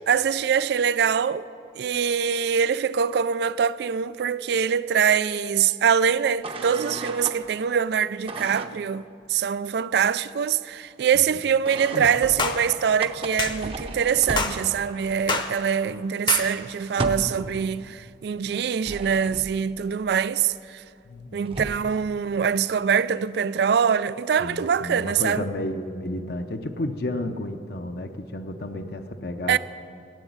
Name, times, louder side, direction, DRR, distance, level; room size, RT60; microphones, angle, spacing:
voice 1, 0.0-1.5 1.7-20.8 21.3-25.5 29.5-29.6, right 7 dB, 60° right, 0.3 m, -24 dB
sound 1, 6.4-7.4 8.3-8.8 11.6-15.0 15.4-15.5 15.8-17.5 18.5-19.7 21.1-21.2 21.4-22.0, right 2 dB, 30° right, 0.7 m, -35 dB
sound 2, 12.4-12.6 13.4-13.6 14.4-14.6 15.3-15.5 16.3-16.5, left 4 dB, 25° left, 0.8 m, -25 dB
voice 2, 21.0-21.6 24.4-29.6, left 1 dB, 55° left, 0.7 m, -32 dB
13.5 x 8.1 x 9.4 m
head